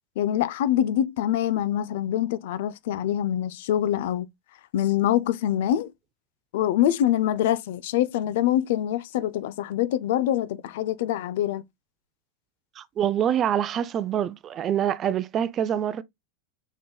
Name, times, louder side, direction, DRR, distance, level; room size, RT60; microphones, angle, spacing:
voice 1, 0.2-4.3 4.7-5.9 6.5-11.6, left 11 dB, 70° left, 0.5 m, -25 dB
voice 2, 12.8-16.0, right 9 dB, 35° right, 0.4 m, -25 dB
5.3 x 3.8 x 2.2 m
hypercardioid pair, 115°, 0 cm